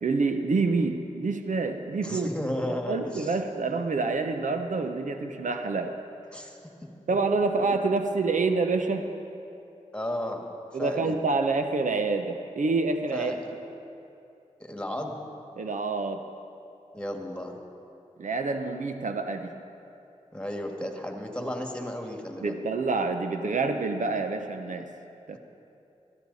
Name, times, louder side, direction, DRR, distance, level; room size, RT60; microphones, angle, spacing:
voice 1, 0.0-2.3 2.7-6.0 7.1-9.1 10.7-13.3 15.6-16.2 18.2-19.5 22.4-24.9 25.3-25.4, right 3 dB, 75° right, 6 dB, 0.7 m, -27 dB
voice 2, 2.0-3.4 6.3-6.6 9.9-10.4 10.8-11.2 13.1-13.4 14.6-15.1 16.9-17.6 20.3-22.6, left 1 dB, 10° left, 2 dB, 2.0 m, -33 dB
16.5 x 13.5 x 4.1 m, 2.8 s
cardioid pair, 40°, 13 cm